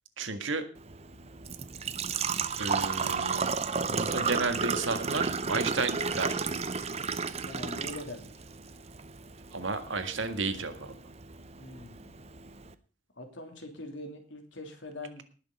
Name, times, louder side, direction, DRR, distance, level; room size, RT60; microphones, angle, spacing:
voice 1, 0.2-0.6 2.6-3.6 3.9-6.4 9.5-10.7, right 3 dB, 90° right, 7 dB, 1.8 m, -32 dB
Engine / Trickle dribble / Fill (with liquid), 0.8-12.7, right 5 dB, 35° right, 0.7 m, -33 dB
voice 2, 7.4-8.3 11.6-12.2 13.2-15.2, left 2 dB, 80° left, 4 dB, 3.0 m, -43 dB
19.0 x 6.6 x 5.4 m, 0.39 s
head